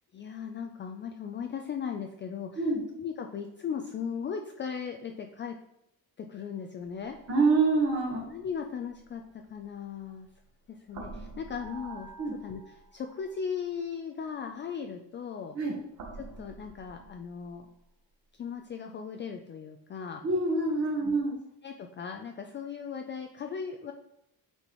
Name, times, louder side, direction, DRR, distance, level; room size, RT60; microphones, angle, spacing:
voice 1, 0.1-5.6 6.2-7.2 8.2-10.3 10.7-12.1 12.4-15.6 16.2-17.7 18.3-20.2 21.0-21.2 21.6-23.9, left 7 dB, 30° left, 5 dB, 0.4 m, -38 dB
sound 1, 6.8-10.4 10.9-13.4 14.3-14.4 16.0-17.8, right 3 dB, 55° right, 1.2 m, -48 dB
voice 2, 7.3-8.3 12.2-12.3 15.5-15.7 20.2-21.3, right 3 dB, 40° right, -4 dB, 1.3 m, -26 dB
8.7 x 4.3 x 3.0 m, 0.82 s
cardioid pair, 160°, 37 cm